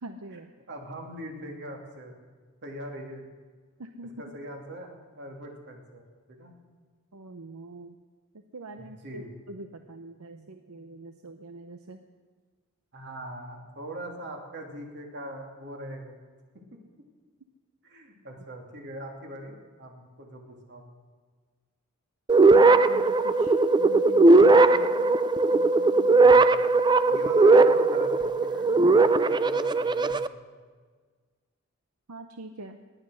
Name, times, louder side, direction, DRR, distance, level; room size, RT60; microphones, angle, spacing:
voice 1, 0.0-0.5 3.8-4.1 7.1-7.9 8.5-12.0 22.5-25.1 25.5-26.2 32.1-32.8, right 2 dB, 80° right, 7 dB, 0.8 m, -44 dB
voice 2, 0.7-2.1 2.6-3.2 4.2-6.0 6.3-6.6 8.8-9.3 12.9-16.2 16.5-16.8 17.8-20.8 26.2-26.5 27.1-30.6, right 1 dB, 55° right, 2 dB, 2.6 m, -41 dB
sound 1, 22.3-30.3, right 3 dB, 20° right, 0.4 m, -19 dB
19.0 x 9.9 x 6.3 m, 1.5 s
head